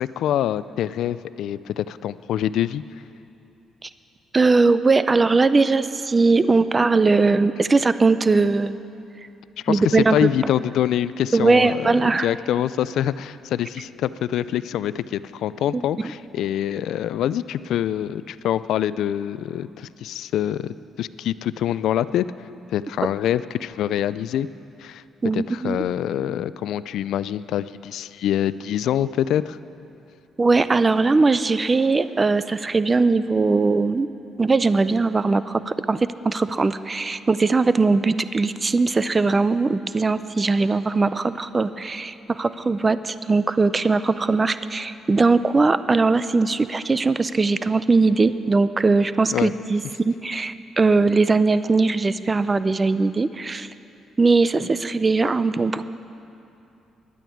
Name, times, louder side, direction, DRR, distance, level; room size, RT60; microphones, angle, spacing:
voice 1, 0.0-2.8 9.6-22.2 22.7-24.5 24.8-25.0 25.3-29.6 49.3-49.5, left 11 dB, 80° left, 16 dB, 0.3 m, -25 dB
voice 2, 4.3-8.8 9.7-10.3 11.3-12.3 15.7-16.1 25.2-25.8 30.4-34.1 34.4-53.7 54.2-55.8, right 3 dB, 25° right, 14 dB, 0.5 m, -20 dB
11.0 x 9.1 x 8.6 m, 2.8 s
cardioid pair, 90°, 0 cm